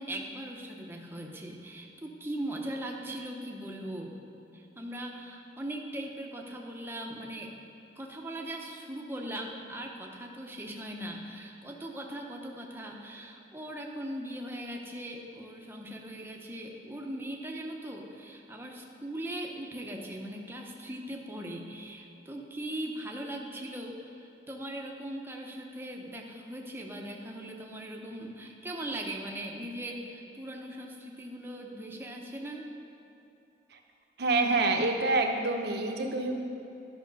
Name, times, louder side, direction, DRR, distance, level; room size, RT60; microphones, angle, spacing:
voice 1, 0.0-4.2 4.5-7.5 8.0-32.7, right 1 dB, 15° right, 0 dB, 0.8 m, -39 dB
voice 2, 34.2-36.4, right 3 dB, 60° right, 3 dB, 0.9 m, -27 dB
11.5 x 6.0 x 5.4 m, 2.8 s
head